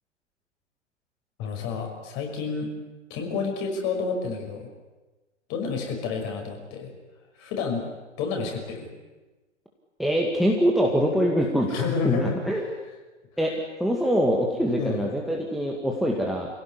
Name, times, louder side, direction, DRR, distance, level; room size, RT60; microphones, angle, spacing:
voice 1, 1.4-2.7 3.1-4.7 5.5-6.9 7.3-7.9 8.2-8.9 11.7-12.7 14.8-15.1, left 5 dB, 30° left, 2 dB, 5.9 m, -30 dB
voice 2, 10.0-11.7 12.0-12.6 13.4-16.5, equal, ahead, -1 dB, 2.0 m, -24 dB
26.0 x 17.5 x 10.0 m, 1.2 s
figure-of-eight pair, 110°, 37 cm